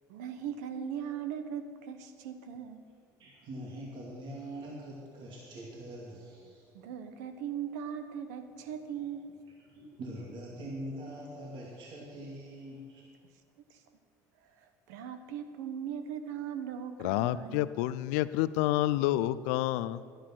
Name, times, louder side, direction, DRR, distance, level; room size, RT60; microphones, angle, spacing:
voice 1, 0.1-2.8 6.7-9.4 13.7-13.8 14.4-17.7, right 8 dB, 80° right, 9 dB, 1.0 m, -39 dB
voice 2, 3.2-6.7 9.0-9.1 9.7-13.0, right 1 dB, 60° right, -3 dB, 2.6 m, -43 dB
voice 3, 17.0-20.0, left 15 dB, 80° left, 16 dB, 0.4 m, -29 dB
11.5 x 10.0 x 6.1 m, 2.1 s
hypercardioid pair, 70°, 9 cm